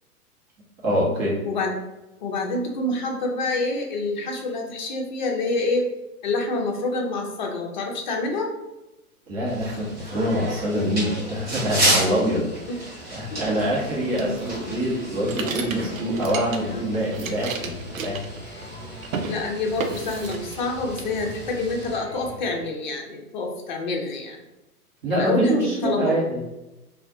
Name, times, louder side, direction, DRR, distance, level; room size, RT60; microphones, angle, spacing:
voice 1, 0.8-1.4 9.3-12.4 13.1-18.2 25.0-26.4, equal, 40° right, -4 dB, 1.0 m, -25 dB
voice 2, 1.4-1.8 2.2-5.8 6.2-8.5 12.7-12.8 13.3-14.4 19.2-24.4 25.1-26.2, left 2 dB, 35° left, 1 dB, 0.4 m, -27 dB
sound 1, 9.5-22.0, right 1 dB, 20° right, 1.2 m, -32 dB
sound 2, 14.2-16.8 17.1-18.8 19.0-19.4 19.8-20.7 21.0-21.7, right 5 dB, 60° right, 0.5 m, -33 dB
Electric guitar, 14.7-22.6, left 1 dB, 5° right, 0.7 m, -44 dB
2.5 x 2.3 x 2.5 m, 1.0 s
figure-of-eight pair, 110°, 45 cm